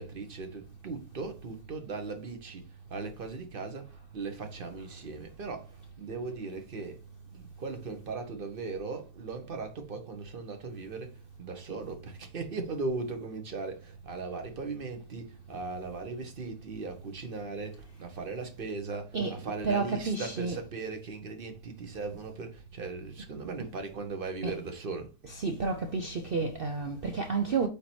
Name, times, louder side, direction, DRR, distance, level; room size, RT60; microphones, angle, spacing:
voice 1, 0.0-7.0 7.3-25.1, right 4 dB, 40° right, 0.9 m, -38 dB
voice 2, 19.6-20.6 24.4-24.6 25.3-27.7, right 4 dB, 70° right, 0.5 m, -30 dB
8.3 x 2.9 x 4.4 m
omnidirectional pair, 1.8 m